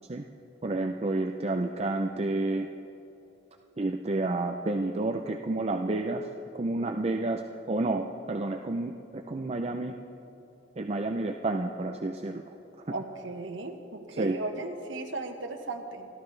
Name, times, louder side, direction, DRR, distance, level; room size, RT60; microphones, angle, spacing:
voice 1, 0.6-2.7 3.8-6.3 6.5-7.4 7.7-10.0 10.8-12.4 14.2-14.4, right 2 dB, 35° right, 4 dB, 0.5 m, -30 dB
voice 2, 12.9-16.1, right 2 dB, 80° right, 4 dB, 1.3 m, -36 dB
29.0 x 12.5 x 3.3 m, 2.9 s
head